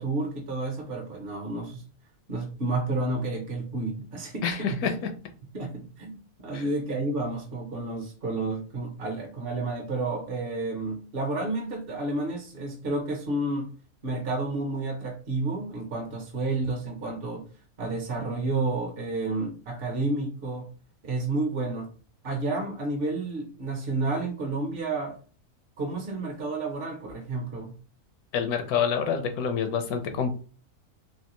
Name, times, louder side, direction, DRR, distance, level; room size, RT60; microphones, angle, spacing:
voice 1, 0.0-1.8 2.3-5.0 5.5-13.7 14.0-17.5 17.8-20.7 21.0-21.9 22.2-25.2 25.8-27.8, right 2 dB, 50° right, 0.7 m, -30 dB
voice 2, 4.4-4.9 6.5-6.6 28.3-30.3, left 7 dB, 85° left, 1.2 m, -27 dB
3.3 x 2.8 x 2.9 m
omnidirectional pair, 1.6 m